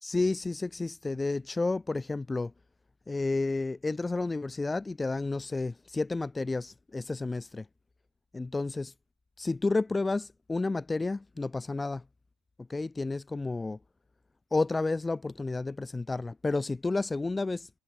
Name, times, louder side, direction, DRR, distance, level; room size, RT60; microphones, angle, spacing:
voice 1, 0.0-2.5 3.1-7.7 8.3-8.9 9.4-12.0 12.6-13.8 14.5-17.7, left 3 dB, 15° left, 1.9 m, -31 dB
hypercardioid pair, 75°, 0 cm